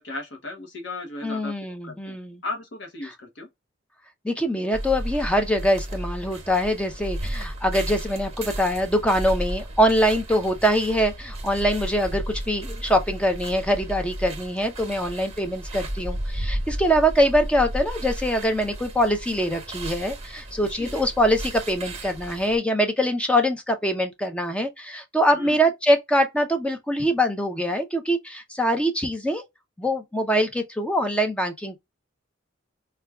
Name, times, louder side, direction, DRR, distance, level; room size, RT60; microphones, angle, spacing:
voice 1, 0.0-2.2 2.4-3.5 20.7-21.0 25.3-25.6, left 2 dB, 55° left, 0.8 m, -36 dB
voice 2, 1.2-2.4 3.0-3.1 4.2-29.4 29.8-31.8, equal, 5° left, 0.5 m, -23 dB
sound 1, 4.7-22.6, right 1 dB, 30° right, 1.0 m, -34 dB
4.5 x 2.2 x 2.2 m
head